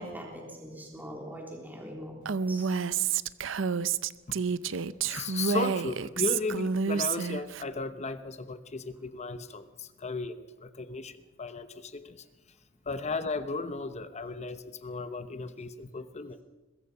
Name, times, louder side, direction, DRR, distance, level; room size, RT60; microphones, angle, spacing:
voice 1, 0.0-2.2 2.5-2.7, equal, 10° right, 0 dB, 3.6 m, -42 dB
Female speech woman speaking, 2.3-7.6, right 6 dB, 70° right, 0.6 m, -29 dB
voice 2, 5.0-12.2 12.9-16.4, left 3 dB, 35° left, 11 dB, 1.0 m, -35 dB
22.0 x 21.5 x 5.6 m, 1.2 s
head